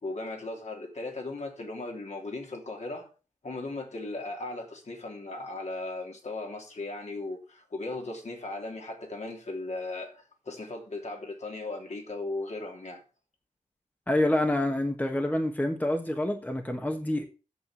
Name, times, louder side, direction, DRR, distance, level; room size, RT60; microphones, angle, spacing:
voice 1, 0.0-3.1 3.4-13.0, left 2 dB, 60° left, 2.9 m, -37 dB
voice 2, 14.1-17.3, left 1 dB, 10° left, 1.3 m, -27 dB
8.4 x 7.2 x 6.0 m
wide cardioid pair, 100°, 13 cm